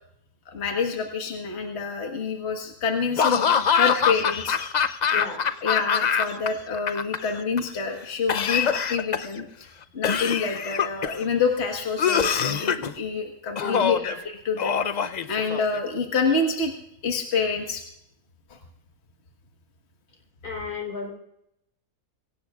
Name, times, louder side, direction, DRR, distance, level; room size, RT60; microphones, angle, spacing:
voice 1, 0.5-4.6 5.6-9.7 9.9-14.7 15.1-16.7 17.0-17.8, left 4 dB, 45° left, 2 dB, 1.7 m, -27 dB
Laughter / Cough, 3.2-6.5 6.7-7.6 8.3-9.4 10.0-11.2 12.0-12.9 13.6-14.1 14.6-15.8, left 7 dB, 60° left, 0.4 m, -24 dB
voice 2, 5.1-5.4 13.6-13.9 20.4-21.1, left 4 dB, 80° left, 2 dB, 4.6 m, -32 dB
23.5 x 17.5 x 2.4 m, 0.78 s
omnidirectional pair, 1.6 m